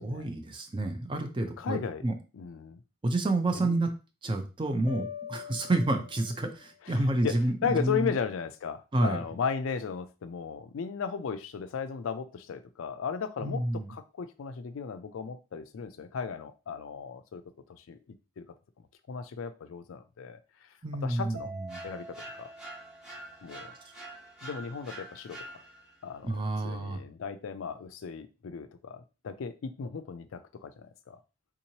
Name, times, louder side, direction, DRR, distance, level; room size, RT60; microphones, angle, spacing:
voice 1, 0.0-2.1 3.0-3.9 4.2-8.1 8.9-9.2 13.4-13.9 20.8-21.4 21.7-21.8 26.2-27.0, right 2 dB, 25° right, 6 dB, 0.4 m, -29 dB
voice 2, 1.6-2.1 2.3-2.8 3.5-3.8 6.8-17.4 17.7-18.0 18.4-18.5 19.1-20.7 21.0-21.5 21.8-22.5 23.4-23.8 24.4-25.6 26.0-31.2, left 6 dB, 70° left, 11 dB, 0.4 m, -36 dB
sound 1, 4.9-6.8, left 9 dB, 25° left, 0.7 m, -43 dB
Mallet percussion, 21.3-23.8, right 2 dB, 70° right, 2.1 m, -46 dB
sound 2, 21.7-26.0, right 1 dB, 5° right, 0.9 m, -46 dB
3.7 x 2.9 x 2.8 m, 0.31 s
head